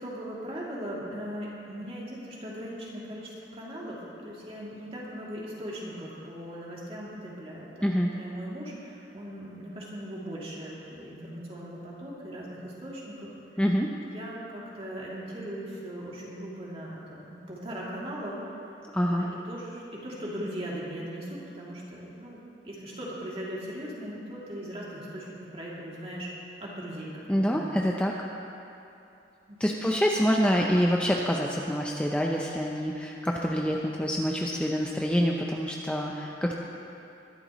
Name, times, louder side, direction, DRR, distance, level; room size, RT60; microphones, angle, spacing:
voice 1, 0.0-13.6 14.0-18.4 19.0-22.4 22.6-26.3 26.6-27.7 29.5-29.9, equal, 35° right, -6 dB, 2.8 m, -39 dB
voice 2, 13.6-13.9 18.9-19.3 27.3-28.1 29.6-36.5, equal, 5° left, -1 dB, 0.6 m, -26 dB
22.0 x 12.0 x 3.1 m, 2.8 s
head